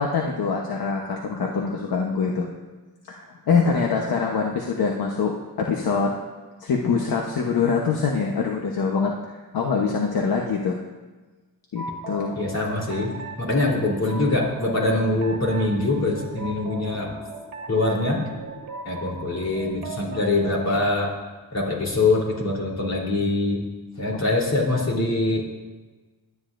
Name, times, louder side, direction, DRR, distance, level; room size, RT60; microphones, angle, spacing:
voice 1, 0.0-2.5 3.0-6.1 6.6-10.8 11.7-12.4 24.1-24.2, left 5 dB, 70° left, 0 dB, 1.1 m, -24 dB
sound 1, 11.8-21.0, right 2 dB, 65° right, 1.3 m, -38 dB
voice 2, 12.4-17.1 17.7-18.2 18.9-21.1 21.5-23.6 24.0-25.4, left 2 dB, 45° left, -2 dB, 3.6 m, -23 dB
23.5 x 9.8 x 2.6 m, 1.2 s
wide cardioid pair, 105°, 38 cm